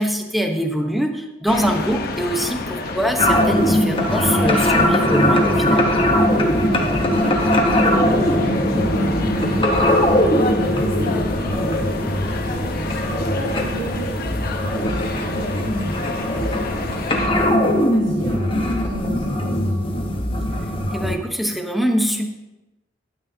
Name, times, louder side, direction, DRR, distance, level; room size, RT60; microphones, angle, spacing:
voice 1, 0.0-5.9 20.9-22.3, equal, ahead, 3 dB, 0.9 m, -23 dB
sound 1, 1.5-17.3, left 3 dB, 55° left, 1.0 m, -29 dB
sound 2, 3.2-21.2, left 1 dB, 30° left, 1.1 m, -20 dB
voice 2, 6.6-20.2, right 3 dB, 85° right, -5 dB, 1.7 m, -36 dB
12.5 x 9.5 x 2.8 m, 1.0 s
head